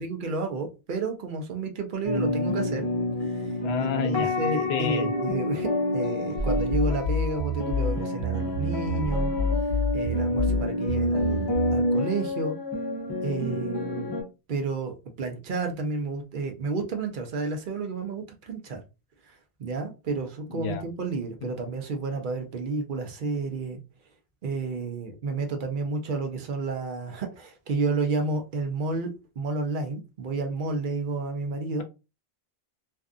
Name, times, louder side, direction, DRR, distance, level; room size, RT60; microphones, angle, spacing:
voice 1, 0.0-2.9 3.3-9.3 9.9-12.6 13.2-14.1 14.5-18.8 19.3-23.8 24.4-29.1 29.4-31.8, right 3 dB, 60° right, 0.7 m, -31 dB
sound 1, 2.0-14.2, left 1 dB, 30° left, 0.6 m, -28 dB
voice 2, 3.6-4.3 4.7-5.1 20.5-20.8, left 6 dB, 85° left, 0.8 m, -30 dB
sound 2, 6.4-11.8, left 1 dB, 80° right, 1.1 m, -28 dB
2.6 x 2.3 x 2.4 m
omnidirectional pair, 1.0 m